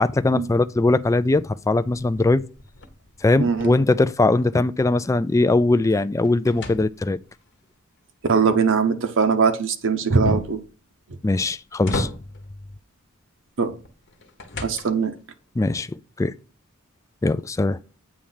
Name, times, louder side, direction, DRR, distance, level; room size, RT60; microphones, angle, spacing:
voice 1, 0.0-2.4 3.2-7.2 11.2-12.1 15.6-15.9 16.2-16.3 17.2-17.8, left 2 dB, 15° left, 0.3 m, -20 dB
sound 1, 1.9-4.8 5.2-7.4 10.2-10.7 11.4-12.6 13.8-15.2, left 1 dB, 55° left, 1.0 m, -33 dB
voice 2, 3.4-3.7 8.2-10.6 13.6-13.8 14.6-15.1, right 5 dB, 60° right, 0.8 m, -21 dB
8.6 x 3.2 x 5.6 m
head